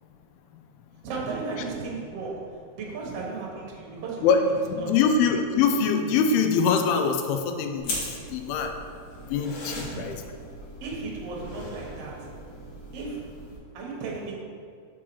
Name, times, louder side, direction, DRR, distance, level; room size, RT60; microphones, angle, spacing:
voice 1, 1.0-4.4 4.7-5.0 9.6-10.2 10.8-12.3 12.9-13.3 13.7-14.3, right 4 dB, 60° right, -3 dB, 1.7 m, -35 dB
voice 2, 4.2-7.9 8.3-8.7 9.3-10.2, left 5 dB, 80° left, 5 dB, 2.5 m, -23 dB
sound 1, 7.8-13.6, left 1 dB, 60° left, 2.3 m, -39 dB
6.0 x 4.7 x 6.1 m, 2.2 s
omnidirectional pair, 4.6 m